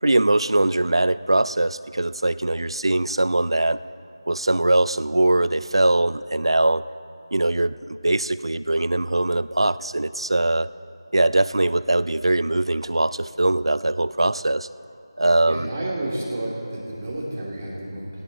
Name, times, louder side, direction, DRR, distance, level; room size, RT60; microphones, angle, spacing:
voice 1, 0.0-3.8 4.3-6.8 7.3-10.7 11.1-14.7 15.2-15.7, right 2 dB, 80° right, 16 dB, 0.4 m, -21 dB
voice 2, 15.4-18.2, right 1 dB, 25° right, -5 dB, 2.8 m, -30 dB
17.5 x 16.0 x 4.1 m, 2.8 s
figure-of-eight pair, 165°, 3 cm